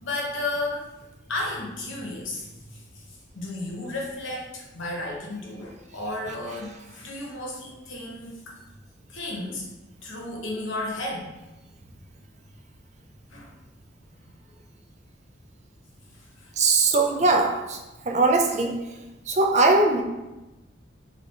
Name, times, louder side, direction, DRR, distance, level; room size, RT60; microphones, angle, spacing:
voice 1, 0.0-0.9 1.3-3.0 3.3-8.5 9.1-9.6 10.0-11.3 13.3-13.5 14.2-14.3 16.4-16.5, left 2 dB, 80° left, -2 dB, 1.0 m, -33 dB
voice 2, 16.6-17.8 18.1-18.7 19.3-20.0, right 3 dB, 35° right, 2 dB, 0.4 m, -20 dB
5.3 x 2.4 x 3.2 m, 1.0 s
head